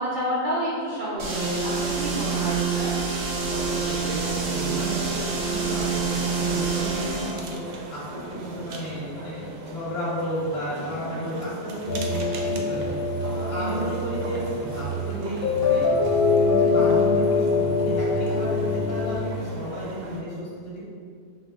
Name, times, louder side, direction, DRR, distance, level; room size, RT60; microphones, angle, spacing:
voice 1, 0.0-3.0, equal, 50° right, -10 dB, 0.6 m, -29 dB
sound 1, 1.2-7.4, right 5 dB, 70° right, 1.1 m, -27 dB
voice 2, 3.5-13.0 13.3-15.9 16.4-20.8, equal, 45° left, -8 dB, 0.9 m, -33 dB
sound 2, 3.7-20.2, right 2 dB, 85° right, 1.2 m, -39 dB
sound 3, 11.9-19.2, left 3 dB, 70° left, 1.0 m, -24 dB
3.9 x 2.7 x 3.3 m, 2.2 s
omnidirectional pair, 1.7 m